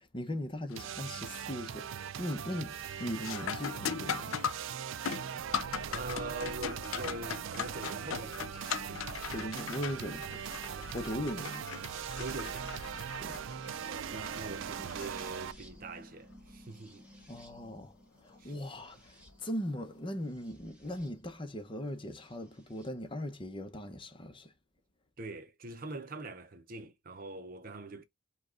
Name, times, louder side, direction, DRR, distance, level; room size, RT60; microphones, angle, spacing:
voice 1, 0.0-4.4 9.3-10.5 10.9-11.7 13.2-13.4 17.3-17.9 18.2-24.5, equal, 25° left, 0.8 m, -39 dB
sound 1, 0.7-1.1 1.5-1.9 2.3-15.8 18.3-18.4 19.2-19.5, left 7 dB, 85° left, 0.5 m, -40 dB
sound 2, 0.8-15.5, right 8 dB, 70° right, 0.4 m, -40 dB
sound 3, 5.4-21.1 22.3-22.9, equal, 5° right, 1.2 m, -53 dB
voice 2, 5.9-9.2 10.7-11.3 12.2-12.8 13.8-17.0 18.4-18.6 25.2-28.0, right 2 dB, 45° right, 0.7 m, -43 dB
5.2 x 2.4 x 3.8 m
head